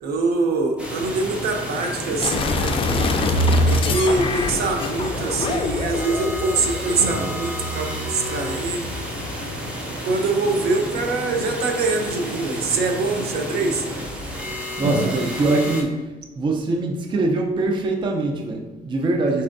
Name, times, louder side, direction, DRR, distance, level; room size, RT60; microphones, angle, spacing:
voice 1, 0.0-2.8 3.7-9.0 10.0-13.8, right 3 dB, 70° right, 3 dB, 0.8 m, -24 dB
sound 1, 0.8-15.8, equal, 5° right, 1.0 m, -31 dB
sound 2, 2.2-9.7, left 2 dB, 30° left, 0.4 m, -25 dB
sound 3, 7.0-9.9 14.8-15.2, right 2 dB, 45° right, 1.1 m, -33 dB
voice 2, 14.8-16.1 16.4-19.4, right 2 dB, 30° right, 2 dB, 0.5 m, -23 dB
4.3 x 4.2 x 2.6 m, 1.2 s
cardioid pair, 110°, 17 cm